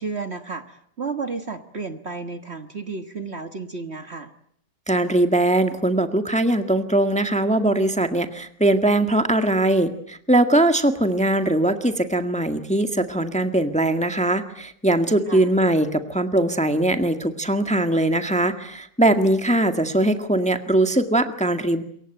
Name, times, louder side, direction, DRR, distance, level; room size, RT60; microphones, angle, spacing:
voice 1, 0.0-4.3 15.3-15.5, right 4 dB, 40° right, 8 dB, 1.6 m, -32 dB
voice 2, 4.9-21.8, right 1 dB, 5° left, 7 dB, 1.6 m, -21 dB
27.5 x 23.5 x 9.1 m, 0.68 s
omnidirectional pair, 1.8 m